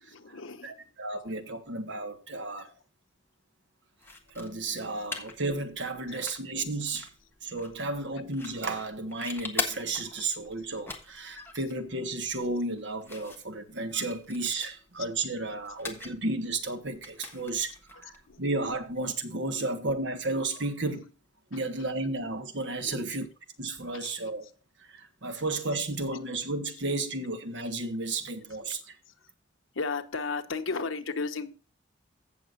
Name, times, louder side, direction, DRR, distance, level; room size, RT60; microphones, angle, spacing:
voice 1, 0.1-0.7 2.6-2.7 6.1-6.2 14.6-14.7 18.3-18.4 22.8-23.2 23.9-24.2 25.3-25.4 29.7-31.5, left 4 dB, 85° left, 1.1 m, -35 dB
voice 2, 0.6-2.7 4.3-7.1 7.4-17.7 18.0-18.1 18.4-21.1 21.5-23.3 23.6-24.5 24.9-28.8, right 2 dB, 65° right, 1.5 m, -33 dB
sound 1, 4.0-19.1, left 3 dB, 10° left, 1.4 m, -43 dB
15.5 x 6.8 x 2.6 m
head